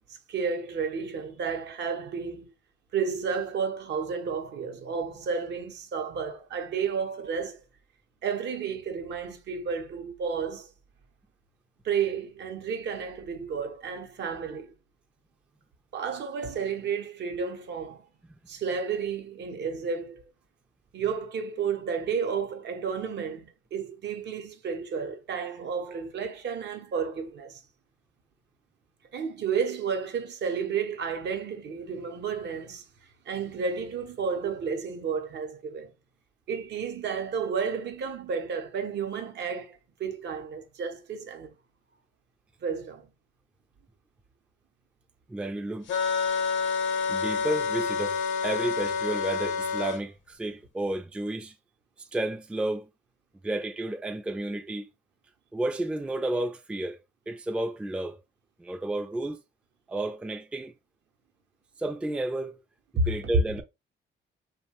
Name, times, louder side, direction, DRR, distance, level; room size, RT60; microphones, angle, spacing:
voice 1, 0.3-2.5 2.9-7.6 8.2-10.7 11.8-14.7 15.9-18.0 18.5-20.2 20.9-27.6 29.1-32.8 33.3-35.9 36.5-41.5 42.6-43.1 63.0-63.1, right 6 dB, 60° right, 0.6 m, -32 dB
voice 2, 45.3-45.9 47.1-51.6 52.0-52.9 53.4-54.9 55.5-57.0 57.3-58.2 58.6-59.4 59.9-60.7 61.8-62.6 62.9-63.6, right 1 dB, 5° right, 0.3 m, -32 dB
sound 1, 45.9-50.0, left 6 dB, 70° left, 0.7 m, -28 dB
2.9 x 2.1 x 2.8 m
cardioid pair, 90°, 20 cm